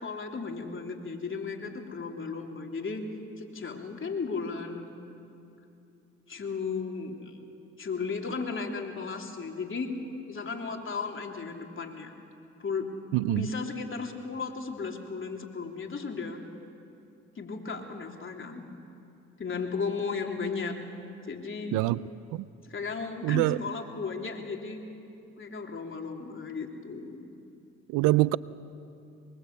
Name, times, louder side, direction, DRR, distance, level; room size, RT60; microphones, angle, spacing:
voice 1, 0.0-3.0 3.4-4.9 6.3-7.3 7.8-9.9 10.3-12.1 12.6-12.9 13.3-16.4 17.3-18.7 19.4-20.8 21.3-21.8 22.7-24.8 25.4-27.3, left 4 dB, 40° left, 2 dB, 3.4 m, -35 dB
voice 2, 13.1-13.5 21.7-22.0 22.3-22.5 23.2-23.6 27.9-28.4, right 19 dB, 85° right, 19 dB, 0.6 m, -24 dB
23.5 x 23.0 x 8.2 m, 2.7 s
supercardioid pair, 60°, 30 cm